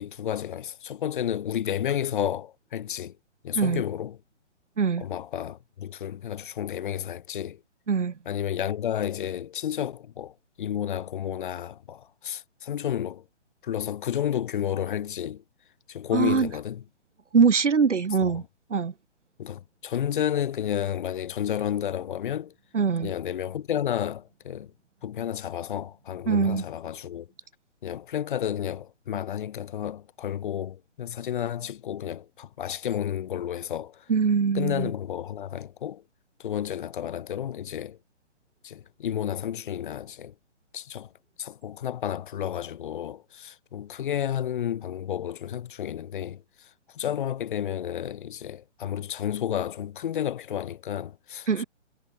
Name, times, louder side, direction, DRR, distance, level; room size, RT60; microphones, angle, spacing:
voice 1, 0.0-3.2 3.4-4.2 5.0-7.6 8.2-13.2 13.6-15.4 15.9-16.8 18.2-18.3 19.4-22.5 23.0-24.7 25.0-27.3 27.8-34.0 34.5-36.0 36.4-38.0 38.6-40.3 40.7-41.1 41.4-51.6, left 10 dB, 45° left, 3.3 m, -31 dB
voice 2, 7.9-8.2 16.1-16.5 17.3-18.4 18.7-18.9 22.7-23.1 26.3-26.6 34.1-34.9 51.5-51.6, right 5 dB, 80° right, 4.5 m, -23 dB
hypercardioid pair, 160°, 35 cm